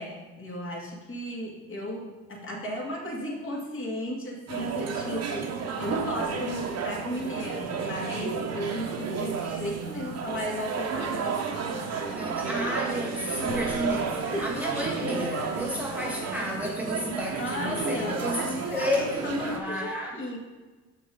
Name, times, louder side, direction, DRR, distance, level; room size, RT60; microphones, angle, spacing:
voice 1, 0.0-11.5 11.9-12.4 14.3-14.5 17.4-20.4, equal, 35° left, -2 dB, 2.4 m, -35 dB
sound 1, 4.5-19.6, right 5 dB, 45° right, 1.3 m, -32 dB
voice 2, 12.2-20.2, equal, 5° right, -2 dB, 1.2 m, -32 dB
6.3 x 5.8 x 5.0 m, 1.3 s
supercardioid pair, 80°, 36 cm